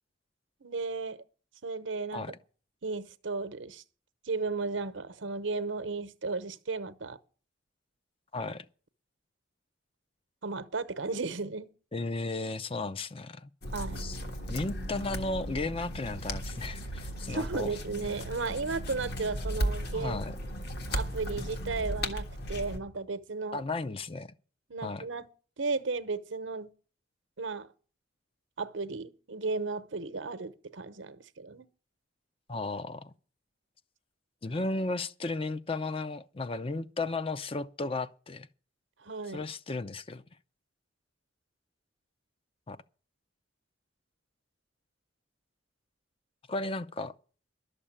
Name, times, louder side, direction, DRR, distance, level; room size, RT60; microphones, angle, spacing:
voice 1, 0.6-1.2 1.6-2.3 2.8-3.8 4.2-7.2 10.4-11.7 13.7-14.1 17.2-20.2 20.9-23.6 24.7-25.3 25.6-26.7 27.4-27.7 28.6-31.7 39.0-39.4, right 4 dB, 80° right, 0.9 m, -34 dB
voice 2, 8.3-8.7 11.9-13.5 14.0-14.2 14.5-17.8 19.9-20.3 23.5-24.3 24.8-25.1 32.5-33.1 34.4-38.5 39.3-40.2 42.7-42.8 46.5-47.1, left 3 dB, 30° left, 0.5 m, -34 dB
sound 1, 13.6-22.8, equal, 55° left, 1.6 m, -36 dB
12.0 x 6.8 x 8.7 m
head